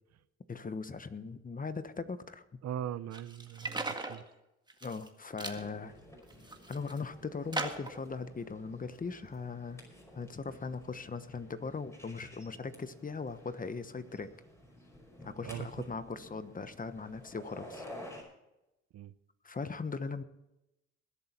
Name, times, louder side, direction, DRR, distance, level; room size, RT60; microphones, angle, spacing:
voice 1, 0.5-2.4 4.8-6.0 6.7-9.8 10.1-14.3 15.2-17.8 19.4-20.2, left 4 dB, 25° left, 1.1 m, -39 dB
voice 2, 2.6-4.2 15.4-15.7 18.9-19.1, right 10 dB, 60° right, 0.8 m, -40 dB
sound 1, 3.1-4.2 4.7-5.1 5.4-5.6 6.2-7.0 7.5-8.0, right 2 dB, 15° right, 1.8 m, -38 dB
sound 2, 5.5-18.2, left 1 dB, 10° left, 5.3 m, -52 dB
21.0 x 8.2 x 4.4 m
cardioid pair, 90°, 30 cm